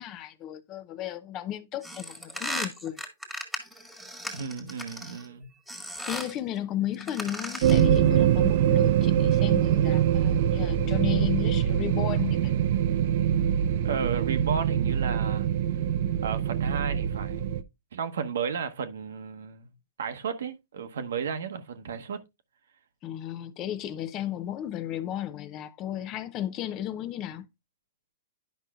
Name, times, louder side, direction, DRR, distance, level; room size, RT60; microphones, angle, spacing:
voice 1, 0.0-3.0 6.0-12.5 23.0-27.5, left 11 dB, 30° left, 0.6 m, -34 dB
sound 1, 1.8-5.3 5.7-6.4 6.9-7.9, equal, ahead, 1.6 m, -37 dB
voice 2, 4.3-5.5 13.8-15.5 16.2-17.5 17.9-19.7 20.0-22.2, right 6 dB, 75° right, 1.0 m, -33 dB
sound 2, 7.6-17.6, right 10 dB, 55° right, 0.5 m, -24 dB
10.5 x 5.5 x 2.4 m
hypercardioid pair, 135°, 0 cm